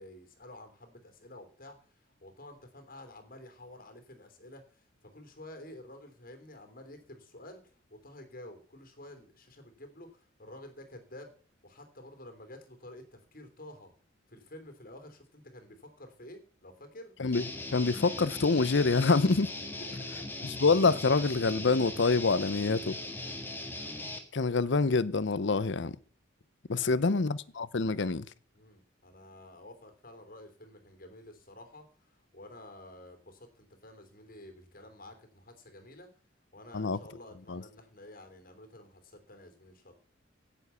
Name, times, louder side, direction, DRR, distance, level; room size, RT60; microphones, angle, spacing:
voice 1, 0.0-1.8 2.2-7.6 7.9-11.3 11.6-13.9 14.3-17.1 23.2-23.5 26.7-27.2 28.5-36.1 36.5-39.9, left 1 dB, 45° left, 3.0 m, -50 dB
Guitar, 17.3-24.2, left 2 dB, 10° left, 1.8 m, -39 dB
voice 2, 17.7-19.5 20.6-23.0 24.3-26.0 26.7-28.3 36.7-37.0 37.5-37.6, left 4 dB, 60° left, 0.7 m, -26 dB
16.5 x 7.3 x 5.6 m
head